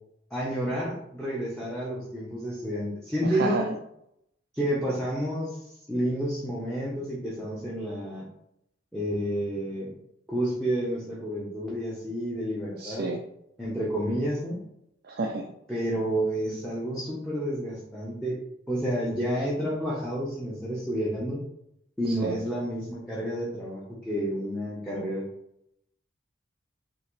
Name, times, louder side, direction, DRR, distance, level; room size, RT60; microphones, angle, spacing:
voice 1, 0.3-3.6 4.5-8.2 8.9-9.9 10.3-13.0 13.6-14.6 15.7-18.3 18.7-21.4 22.0-25.3, equal, 5° left, -7 dB, 0.9 m, -30 dB
voice 2, 3.2-3.7 12.8-13.2 15.0-15.5 22.1-22.4, right 3 dB, 50° right, 3 dB, 0.4 m, -30 dB
5.6 x 2.9 x 3.2 m, 0.78 s
head